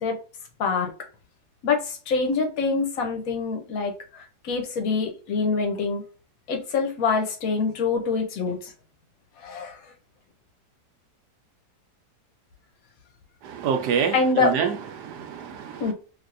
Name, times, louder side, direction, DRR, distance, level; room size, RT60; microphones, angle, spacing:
voice 1, 0.6-0.9 1.6-6.0 6.5-8.7 9.4-9.8 14.1-14.6 15.8-15.9, left 4 dB, 65° left, 1.1 m, -25 dB
voice 2, 13.4-15.8, right 7 dB, 75° right, 1.1 m, -27 dB
3.4 x 2.6 x 2.5 m
omnidirectional pair, 1.8 m